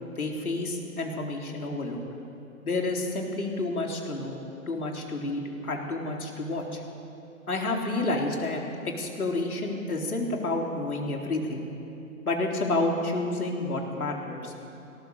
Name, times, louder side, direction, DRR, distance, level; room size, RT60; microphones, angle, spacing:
voice 1, 0.2-2.0 2.6-4.4 4.7-6.8 7.5-11.6 12.3-14.5, left 2 dB, 75° left, 1 dB, 4.0 m, -30 dB
18.5 x 17.5 x 8.1 m, 2.8 s
hypercardioid pair, 170°, 43 cm